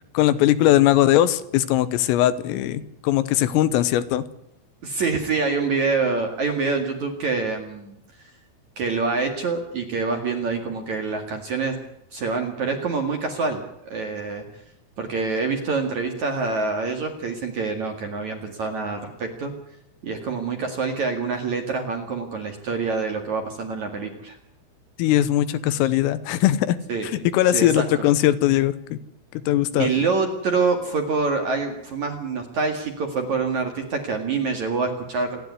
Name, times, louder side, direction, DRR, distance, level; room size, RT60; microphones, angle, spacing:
voice 1, 0.2-4.2 25.0-26.8 27.1-29.0 29.5-29.9, left 13 dB, 85° left, 14 dB, 3.7 m, -20 dB
voice 2, 4.8-8.0 8.8-11.7 12.1-14.4 15.0-19.5 20.0-24.4 26.9-27.1 27.5-27.8 29.8-35.3, right 4 dB, 50° right, 4 dB, 2.4 m, -26 dB
28.0 x 10.5 x 9.5 m, 0.80 s
omnidirectional pair, 5.9 m